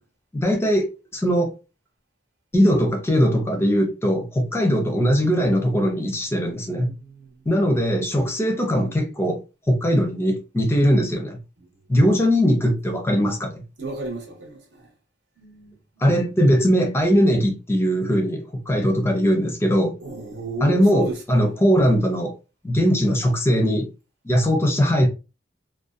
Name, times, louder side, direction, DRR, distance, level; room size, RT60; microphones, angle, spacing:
voice 1, 0.3-1.5 2.5-6.9 7.5-9.4 9.7-11.4 11.9-13.6 16.0-20.0 20.6-22.4 22.6-23.9 24.2-25.1, equal, 15° left, 0.5 m, -20 dB
voice 2, 6.3-7.5 13.8-14.9 15.4-16.3 20.0-21.5, right 2 dB, 75° right, 0.9 m, -35 dB
2.5 x 2.1 x 2.4 m
head